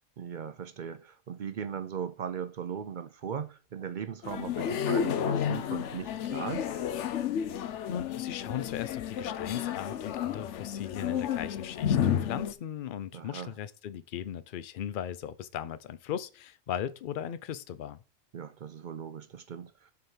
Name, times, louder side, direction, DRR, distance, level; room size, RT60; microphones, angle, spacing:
voice 1, 0.2-6.7 13.1-13.5 18.3-19.9, right 7 dB, 55° right, 0.6 m, -38 dB
sound 1, 4.2-12.5, left 9 dB, 80° left, 1.0 m, -31 dB
voice 2, 7.5-18.0, left 9 dB, 55° left, 0.6 m, -38 dB
6.5 x 4.3 x 5.4 m
omnidirectional pair, 1.2 m